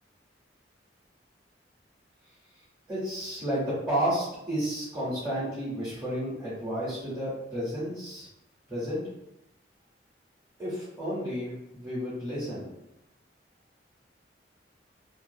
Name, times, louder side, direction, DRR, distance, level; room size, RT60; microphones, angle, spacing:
voice 1, 2.9-8.3 8.7-9.0 10.6-12.7, equal, 10° right, -11 dB, 0.8 m, -31 dB
2.5 x 2.3 x 2.6 m, 0.87 s
head